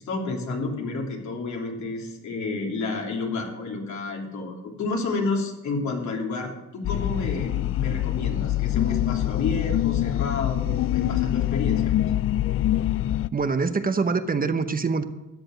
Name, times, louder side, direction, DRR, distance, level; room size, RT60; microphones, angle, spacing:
voice 1, 0.0-11.9, left 3 dB, 70° left, 0 dB, 3.2 m, -30 dB
sound 1, 6.8-13.3, left 13 dB, 45° left, 0.4 m, -25 dB
voice 2, 13.3-15.0, right 4 dB, 30° right, 9 dB, 0.9 m, -24 dB
13.0 x 8.6 x 6.4 m, 1.0 s
cardioid pair, 90°, 30 cm